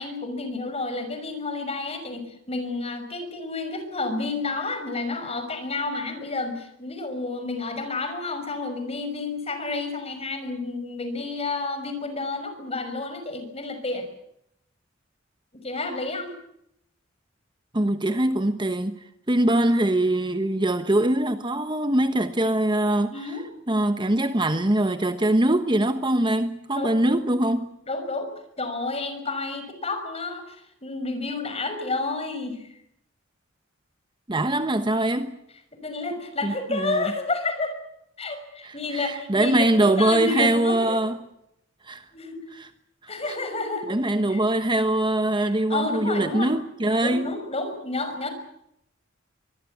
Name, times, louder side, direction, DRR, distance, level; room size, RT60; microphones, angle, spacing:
voice 1, 0.0-14.1 15.5-16.3 23.1-23.4 26.7-26.9 27.9-32.7 35.8-37.7 38.2-41.0 42.1-42.4 43.1-43.9 44.3-44.4 45.4-46.5 47.0-48.3, left 3 dB, 30° left, 5.9 m, -30 dB
voice 2, 17.7-19.0 19.3-23.3 23.7-27.7 34.3-35.4 36.4-37.1 38.6-41.2 41.8-42.0 42.6-42.7 43.0-43.1 43.9-47.4, right 1 dB, 25° right, 1.1 m, -23 dB
24.5 x 20.5 x 8.5 m
head